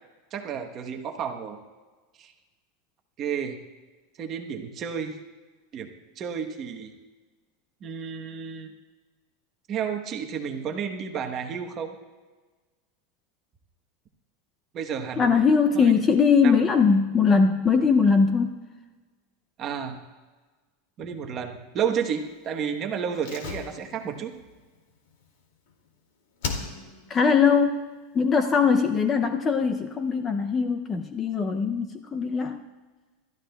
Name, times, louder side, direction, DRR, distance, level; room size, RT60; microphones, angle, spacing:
voice 1, 0.3-1.6 2.2-2.3 3.2-3.6 4.2-5.2 5.7-6.9 7.8-8.7 9.7-12.0 14.7-15.4 15.7-15.9 16.4-16.5 19.6-20.0 21.0-24.3, right 7 dB, 25° right, 3 dB, 1.0 m, -31 dB
voice 2, 15.2-18.6 27.1-27.8 28.1-32.6, left 5 dB, 15° left, 8 dB, 0.4 m, -21 dB
Slam, 23.2-25.9 26.4-27.2 27.4-27.5, left 4 dB, 65° left, 2.3 m, -37 dB
27.5 x 13.5 x 2.3 m, 1.3 s
supercardioid pair, 175°, 0 cm